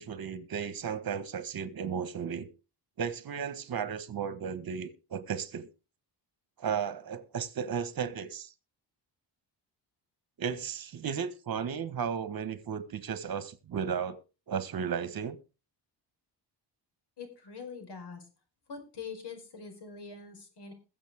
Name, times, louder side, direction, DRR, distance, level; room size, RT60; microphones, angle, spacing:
voice 1, 0.0-2.5 3.0-5.7 6.6-8.5 10.4-14.2 14.5-15.4, right 7 dB, 50° right, 1.7 m, -34 dB
voice 2, 17.2-18.2 18.7-20.7, left 5 dB, 65° left, 5.1 m, -44 dB
21.5 x 7.4 x 3.7 m
cardioid pair, 110°, 44 cm